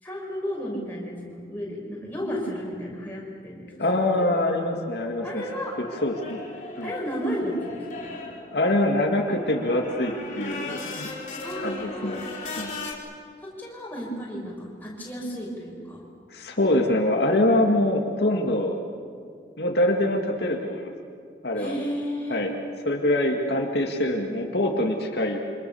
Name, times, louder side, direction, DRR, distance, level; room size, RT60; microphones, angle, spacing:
voice 1, 0.0-3.7 4.2-4.3 5.2-5.8 6.8-8.2 11.4-12.2 13.4-16.0 21.6-22.4, equal, 10° left, -4 dB, 6.6 m, -33 dB
voice 2, 3.8-5.5 5.8-6.4 6.8-6.9 8.5-11.1 11.6-12.7 16.3-18.8 19.6-20.9 21.4-21.8 22.3-22.5 22.8-25.4, left 1 dB, 65° left, 1 dB, 2.2 m, -24 dB
sound 1, 5.3-12.9, left 3 dB, 40° left, 4.6 m, -38 dB
28.5 x 26.0 x 7.2 m, 2.3 s
head